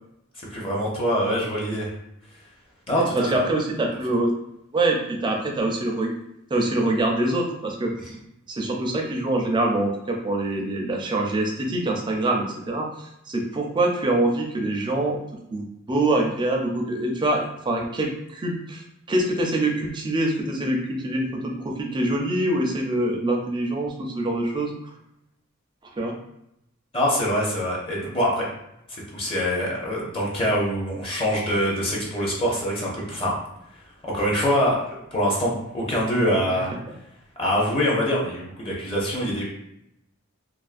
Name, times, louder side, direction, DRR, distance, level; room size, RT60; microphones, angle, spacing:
voice 1, 0.4-1.9 2.9-3.3 26.9-28.5 28.9-33.3 34.0-36.7 37.4-39.4, equal, 25° left, -4 dB, 0.6 m, -24 dB
voice 2, 3.1-4.3 4.7-6.1 6.5-8.2 8.5-15.2 15.5-24.7 25.9-26.2 36.5-36.6, right 2 dB, 25° right, 0 dB, 0.4 m, -25 dB
2.4 x 2.3 x 2.4 m, 0.82 s
head